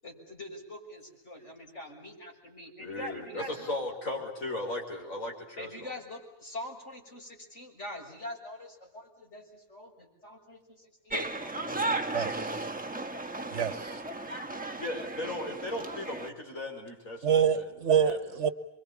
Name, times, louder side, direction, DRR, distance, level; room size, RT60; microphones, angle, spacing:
voice 1, 0.0-3.8 5.6-12.2, left 1 dB, 55° left, 0 dB, 6.7 m, -44 dB
voice 2, 2.8-5.9 14.8-18.2, left 1 dB, 70° left, 1 dB, 5.9 m, -37 dB
sound 1, 11.1-16.3, right 2 dB, 5° right, 1.3 m, -35 dB
voice 3, 12.1-12.6 13.5-14.0 14.3-14.4 17.2-18.5, right 8 dB, 55° right, 14 dB, 1.5 m, -27 dB
27.0 x 23.5 x 8.5 m, 0.85 s
omnidirectional pair, 1.5 m